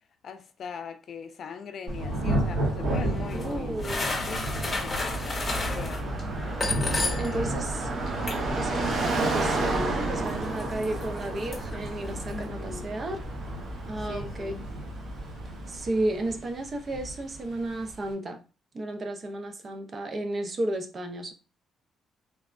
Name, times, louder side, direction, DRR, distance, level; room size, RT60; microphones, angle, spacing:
voice 1, 0.2-6.1 6.6-7.5 12.3-12.9 14.0-14.6, left 6 dB, 60° left, 0.4 m, -41 dB
Thunder / Rain, 1.9-18.1, right 1 dB, 80° right, 1.2 m, -34 dB
sound 1, 2.9-7.5 7.8-12.5, left 3 dB, 30° left, 0.8 m, -35 dB
voice 2, 3.3-4.2 7.2-7.9 8.6-13.2 13.9-14.6 15.7-18.4 18.7-21.3, right 1 dB, 40° right, 0.6 m, -33 dB
Car passing by, 4.9-16.0, right 2 dB, 60° right, 0.9 m, -32 dB
3.3 x 2.0 x 2.5 m
cardioid pair, 90°, 0 cm